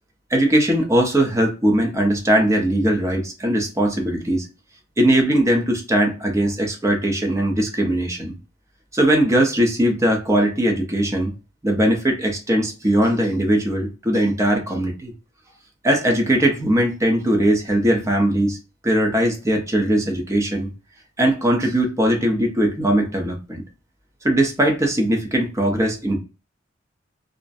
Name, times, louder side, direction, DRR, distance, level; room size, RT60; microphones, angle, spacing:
voice 1, 0.3-4.5 5.0-8.3 8.9-11.3 11.6-15.1 15.8-18.6 18.8-20.7 21.2-23.6 24.2-26.2, right 1 dB, 15° right, 1 dB, 0.6 m, -20 dB
2.5 x 2.1 x 2.5 m, 0.30 s
head